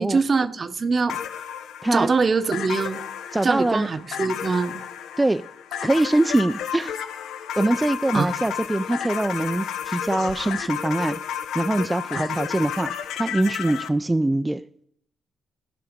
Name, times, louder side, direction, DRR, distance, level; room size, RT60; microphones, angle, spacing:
voice 1, 0.0-1.4 1.9-3.0 3.4-4.8 8.1-8.3, right 4 dB, 40° right, 0.8 m, -23 dB
sound 1, 1.1-13.9, left 9 dB, 85° left, 0.7 m, -32 dB
voice 2, 3.3-3.9 5.2-5.4 5.8-7.0 7.6-11.2 11.5-14.6, right 2 dB, 15° right, 0.4 m, -23 dB
15.0 x 6.0 x 5.1 m
cardioid pair, 100°, 0 cm